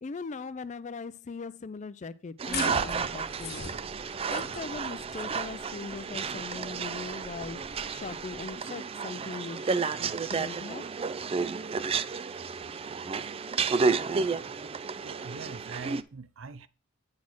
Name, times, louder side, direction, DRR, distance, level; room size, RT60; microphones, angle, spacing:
voice 1, 0.0-3.7 4.3-10.8, left 4 dB, 35° left, 0.4 m, -40 dB
sound 1, 2.4-16.0, right 5 dB, 30° right, 0.3 m, -32 dB
sound 2, 2.5-8.5, left 5 dB, 55° left, 1.0 m, -42 dB
voice 2, 15.0-16.7, right 4 dB, 80° right, 0.6 m, -43 dB
8.6 x 4.2 x 6.0 m
head